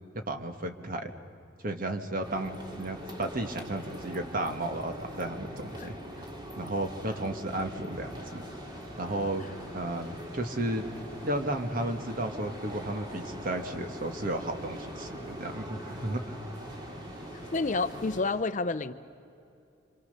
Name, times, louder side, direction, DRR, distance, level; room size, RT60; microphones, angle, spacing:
voice 1, 0.1-1.1 1.6-6.3 6.6-8.5 9.0-9.4 9.7-10.8 11.2-16.4, right 1 dB, 45° right, 6 dB, 1.6 m, -33 dB
sound 1, 2.2-18.2, equal, 25° right, 2.2 m, -42 dB
sound 2, 7.9-18.4, right 1 dB, 75° right, 5.1 m, -51 dB
voice 2, 17.5-18.9, left 3 dB, 40° left, 12 dB, 0.6 m, -29 dB
27.0 x 26.0 x 6.7 m, 2.6 s
head